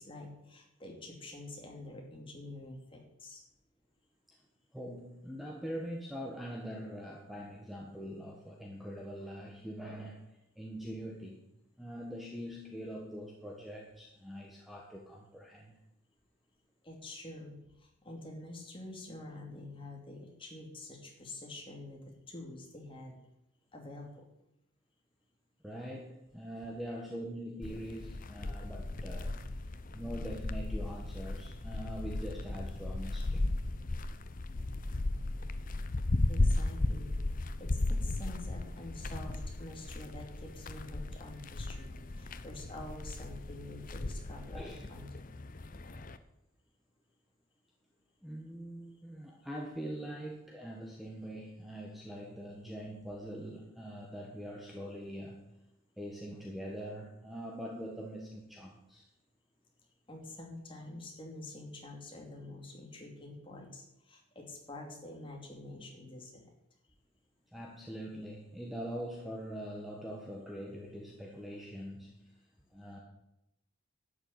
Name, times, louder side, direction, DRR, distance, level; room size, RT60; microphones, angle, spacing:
voice 1, 0.0-3.4 16.8-23.1 23.7-24.3 36.3-45.3 60.1-66.5, left 2 dB, 25° left, 0 dB, 2.8 m, -47 dB
voice 2, 4.7-11.4 11.8-15.8 25.6-29.5 29.9-33.5 44.5-45.1 48.2-55.5 56.0-59.1 67.5-72.2 72.7-73.0, equal, ahead, -2 dB, 1.5 m, -43 dB
sound 1, 27.6-46.2, left 2 dB, 40° left, 0.7 m, -36 dB
12.0 x 6.8 x 9.6 m, 0.86 s
head